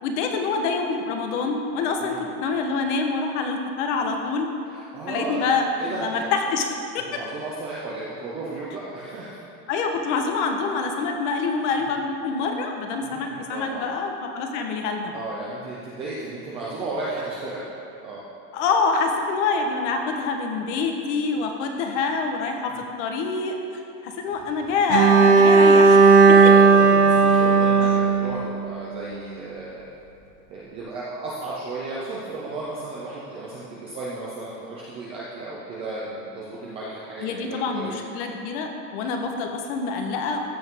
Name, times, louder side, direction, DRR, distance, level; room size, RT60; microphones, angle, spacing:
voice 1, 0.0-4.5 5.1-6.7 6.9-7.1 9.7-15.1 18.5-23.6 24.0-26.0 26.4-26.5 37.2-40.4, left 4 dB, 50° left, 3 dB, 1.2 m, -26 dB
voice 2, 2.0-2.3 4.7-5.4 5.8-6.3 7.1-9.4 11.8-12.0 13.0-13.9 15.1-17.6 18.0-18.2 22.7-22.9 26.0-29.9 30.5-38.0, right 2 dB, 15° right, -7 dB, 0.3 m, -34 dB
Bowed string instrument, 24.9-29.0, right 4 dB, 80° right, 1.3 m, -15 dB
14.0 x 8.1 x 3.6 m, 2.6 s
supercardioid pair, 175°, 46 cm